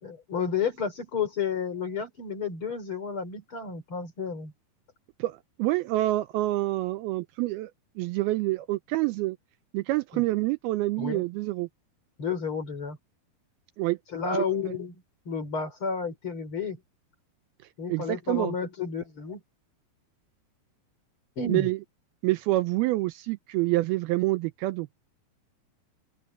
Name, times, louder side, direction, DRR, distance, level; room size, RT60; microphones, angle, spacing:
voice 1, 0.0-4.5 10.1-10.2 11.0-11.2 12.2-13.0 14.1-16.8 17.8-19.4 21.4-21.7, left 5 dB, 35° left, 4.0 m, -31 dB
voice 2, 5.2-7.7 8.0-9.4 9.7-11.7 13.8-14.0 14.3-14.5 17.9-18.6 21.5-21.8 22.2-24.9, right 18 dB, 80° right, 2.4 m, -27 dB
open air
omnidirectional pair, 4.7 m